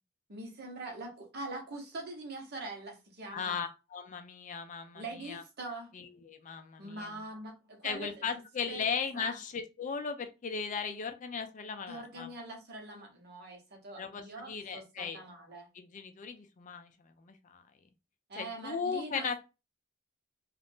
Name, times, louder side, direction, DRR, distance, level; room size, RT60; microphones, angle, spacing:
voice 1, 0.3-3.6 4.9-5.9 6.8-8.2 8.7-9.4 11.9-15.7 18.3-19.3, right 2 dB, 50° right, 1.0 m, -43 dB
voice 2, 3.3-5.4 5.9-7.1 7.8-12.3 14.0-15.2 15.7-16.9 17.2-17.6 18.4-19.3, left 6 dB, 35° left, 0.4 m, -37 dB
2.6 x 2.4 x 3.4 m
head